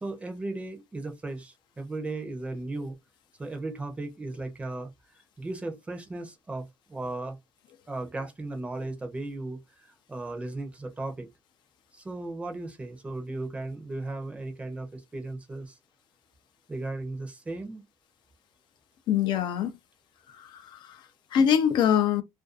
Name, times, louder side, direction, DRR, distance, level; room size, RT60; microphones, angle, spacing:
voice 1, 0.0-2.9 3.4-4.9 5.4-7.4 7.9-11.3 11.9-15.8 16.7-17.8, right 2 dB, 15° right, 0.6 m, -36 dB
voice 2, 19.1-19.7 20.3-22.2, left 8 dB, 60° left, 0.4 m, -24 dB
2.5 x 2.3 x 2.3 m
cardioid pair, 155°, 9 cm